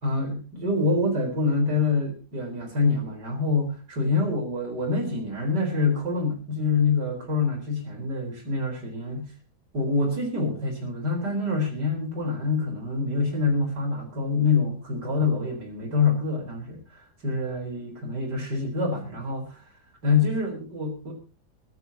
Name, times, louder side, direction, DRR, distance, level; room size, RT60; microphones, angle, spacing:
voice 1, 0.0-9.3 9.7-19.6 20.0-21.1, left 3 dB, 85° right, 4 dB, 4.9 m, -26 dB
23.0 x 14.0 x 2.9 m, 0.34 s
omnidirectional pair, 1.8 m